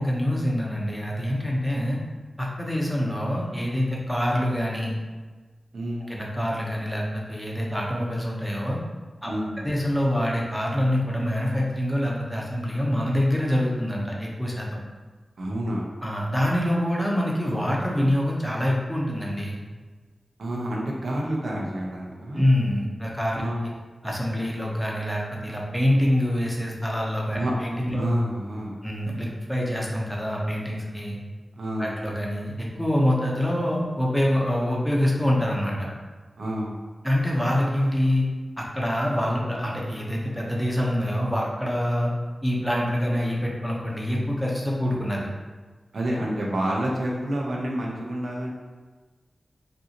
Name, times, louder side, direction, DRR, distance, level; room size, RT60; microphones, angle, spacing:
voice 1, 0.0-2.0 2.4-4.9 6.1-8.8 9.2-9.3 9.6-14.7 16.0-19.6 22.3-23.4 24.0-28.0 28.8-31.2 31.8-35.9 37.0-38.2 38.6-42.1 42.4-45.3, equal, ahead, -3 dB, 0.9 m, -25 dB
voice 2, 5.7-6.1 9.3-9.7 15.4-15.9 20.4-22.4 23.4-23.6 27.3-27.5 27.9-28.8 31.6-31.9 36.4-36.7 45.9-48.5, right 1 dB, 85° right, -2 dB, 0.8 m, -28 dB
5.4 x 2.7 x 2.9 m, 1.4 s
wide cardioid pair, 80°, 0 cm